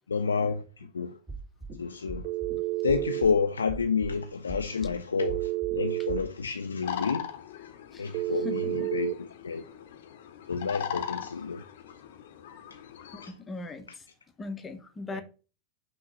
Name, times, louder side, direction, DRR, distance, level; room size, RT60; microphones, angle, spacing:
voice 1, 0.1-1.2 1.8-2.3 2.8-7.3 8.0-9.6 10.5-11.6 13.2-13.3 15.1-15.2, left 5 dB, 80° left, 0.4 m, -30 dB
sound 1, 1.3-1.7 2.1-2.5 2.9-3.3 3.7-4.1 4.5-4.9 5.3-5.8 6.1-6.2, right 4 dB, 30° right, 2.0 m, -39 dB
Telephone, 2.2-3.3 5.2-6.2 8.1-9.2, right 18 dB, 45° right, 0.3 m, -30 dB
sound 2, 6.8-13.3, left 9 dB, 60° left, 0.8 m, -40 dB
voice 2, 8.4-8.9 13.3-13.9 14.4-15.2, left 3 dB, 15° left, 0.8 m, -38 dB
5.8 x 3.0 x 5.4 m
figure-of-eight pair, 90°, 0 cm